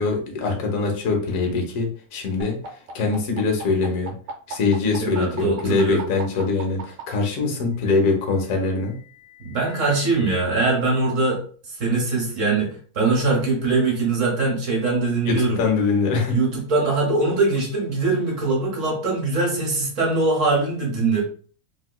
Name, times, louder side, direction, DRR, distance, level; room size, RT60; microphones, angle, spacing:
voice 1, 0.0-4.1 4.5-9.0 15.2-16.4, left 4 dB, 60° left, 2 dB, 0.8 m, -23 dB
sound 1, 2.4-7.0 8.2-10.4, right 4 dB, 80° right, 1.6 m, -39 dB
voice 2, 5.0-6.0 9.4-11.4 11.7-15.6 16.3-21.2, right 3 dB, 45° right, -2 dB, 1.1 m, -22 dB
3.2 x 2.9 x 2.2 m, 0.43 s
omnidirectional pair, 2.3 m